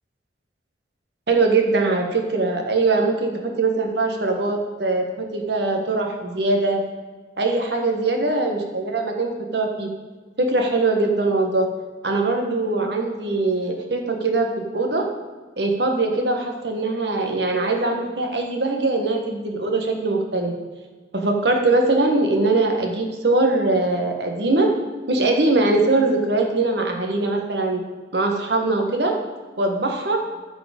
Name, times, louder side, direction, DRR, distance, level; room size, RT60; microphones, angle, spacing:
voice 1, 1.3-6.8 7.4-9.9 10.4-11.7 12.0-14.5 14.7-15.1 15.6-20.5 21.1-24.7 25.1-27.8 28.1-29.1 29.6-30.2, right 2 dB, 70° right, 2 dB, 1.5 m, -21 dB
13.5 x 5.0 x 5.2 m, 1.4 s
head